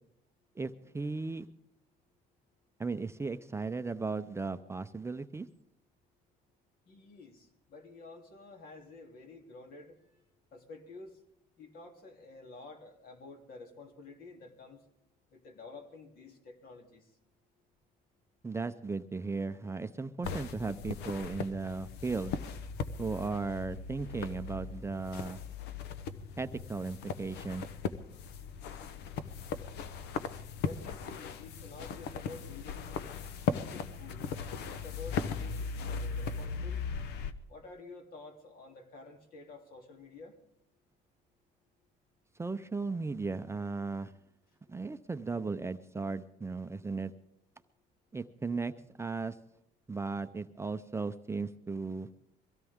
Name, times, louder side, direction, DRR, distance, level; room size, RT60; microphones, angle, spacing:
voice 1, 0.6-1.5 2.8-5.5 18.4-22.4 23.0-25.4 26.4-27.7 42.4-44.1 44.7-47.1 48.1-48.7 49.0-49.4 49.9-52.1, right 4 dB, 15° right, 10 dB, 0.6 m, -36 dB
voice 2, 6.9-10.2 10.5-11.2 11.6-14.8 15.3-17.1 30.6-33.0 33.5-34.3 34.7-36.9 37.5-40.4, left 3 dB, 60° left, 3 dB, 3.1 m, -50 dB
sound 1, 20.2-37.3, left 6 dB, 80° left, 1.0 m, -38 dB
23.0 x 16.5 x 3.6 m, 0.79 s
cardioid pair, 110°, 17 cm